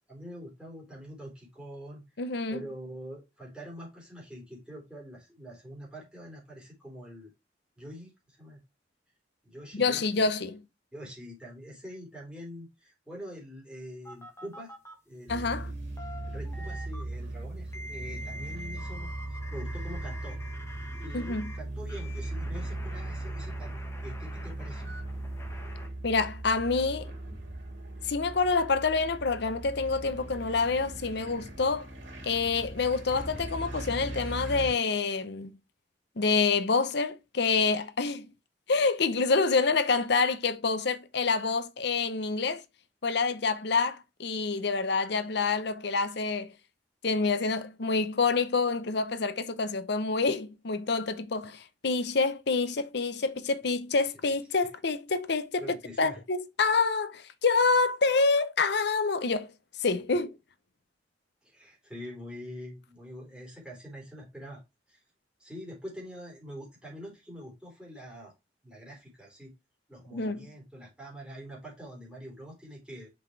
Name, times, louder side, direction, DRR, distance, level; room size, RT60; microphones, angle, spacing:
voice 1, 0.1-2.0 2.5-7.3 7.8-8.6 9.4-10.3 10.9-14.7 15.1-15.7 16.3-20.4 20.9-25.0 55.6-56.2 61.4-64.6 64.9-65.0 65.4-68.3 68.6-69.5 69.9-73.1, equal, 5° right, 3.8 m, -45 dB
voice 2, 2.2-2.6 9.7-10.6 15.3-15.7 21.1-21.5 26.0-27.1 28.1-31.9 32.2-35.6 36.2-38.3 38.7-42.6 43.0-46.5 47.0-59.5 59.8-60.3 70.1-70.4, left 4 dB, 65° left, 0.8 m, -27 dB
sound 1, 14.0-14.9 15.6-17.0 17.7-21.6 21.9-25.9, equal, 15° left, 1.5 m, -46 dB
sound 2, 15.3-34.7, right 2 dB, 85° right, 2.8 m, -38 dB
5.9 x 5.1 x 3.2 m
head